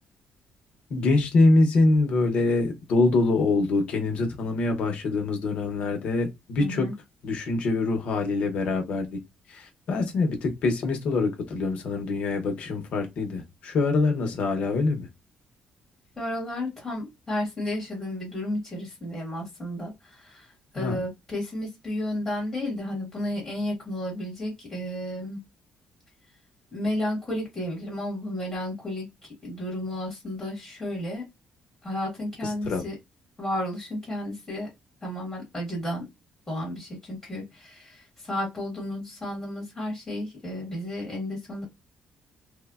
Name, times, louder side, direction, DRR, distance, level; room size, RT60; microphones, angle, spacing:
voice 1, 0.9-6.9 7.2-9.2 9.5-15.1 20.8-21.0 32.4-32.8, left 3 dB, 55° left, 0.7 m, -24 dB
voice 2, 6.6-6.9 16.2-25.4 26.7-31.2 31.8-32.9 33.4-34.7 35.0-36.1 36.5-41.6, left 1 dB, 5° left, 1.0 m, -32 dB
3.1 x 2.1 x 2.3 m
cardioid pair, 175°, 3 cm